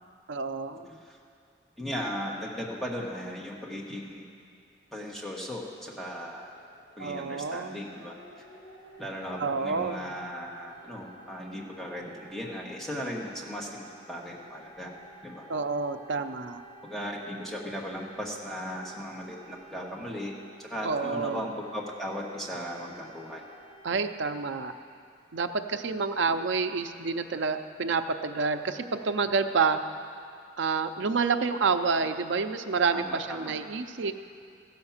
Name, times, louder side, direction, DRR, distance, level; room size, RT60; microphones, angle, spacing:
voice 1, 0.3-0.9 7.0-7.8 9.4-10.1 15.5-16.6 20.8-21.5 23.8-24.7 25.3-29.8 30.6-34.1, right 4 dB, 75° right, 8 dB, 0.5 m, -28 dB
voice 2, 1.8-4.2 4.9-6.5 7.0-8.1 9.0-14.9 15.2-15.4 16.8-23.4 32.9-33.5, equal, ahead, -3 dB, 1.2 m, -37 dB
sound 1, 4.8-4.9 5.2-23.8, right 1 dB, 85° left, 3.3 m, -53 dB
15.0 x 5.8 x 7.2 m, 2.3 s
head